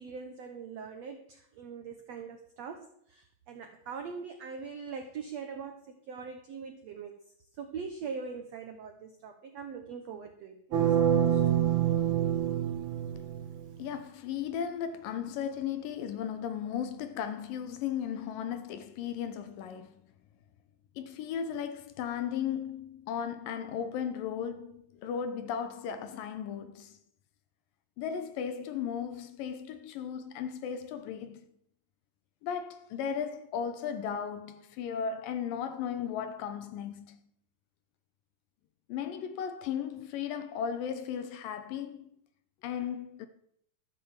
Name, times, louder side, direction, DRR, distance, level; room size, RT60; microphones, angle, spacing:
voice 1, 0.0-7.2 7.6-11.4, right 5 dB, 75° right, 1.5 m, -42 dB
sound 1, 10.7-13.7, right 9 dB, 60° right, 2.5 m, -26 dB
voice 2, 13.8-20.0 21.0-27.0 28.0-31.5 32.4-37.2 38.9-42.1 42.6-43.3, left 8 dB, 75° left, 2.3 m, -36 dB
13.5 x 6.9 x 7.3 m
omnidirectional pair, 4.4 m